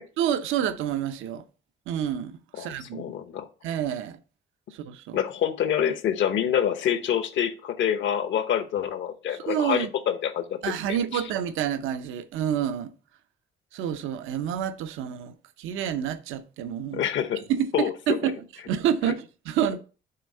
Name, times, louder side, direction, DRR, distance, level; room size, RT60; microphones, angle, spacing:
voice 1, 0.2-1.4 1.9-3.1 3.6-4.2 4.7-5.2 9.3-9.9 10.6-12.9 13.7-17.0 17.5-18.3 18.7-19.8, right 9 dB, 90° right, 0.6 m, -28 dB
voice 2, 2.5-3.5 5.1-10.6 10.9-11.2 16.9-17.4 17.7-18.2, left 9 dB, 70° left, 0.9 m, -26 dB
6.8 x 3.4 x 5.4 m
cardioid pair, 90°, 20 cm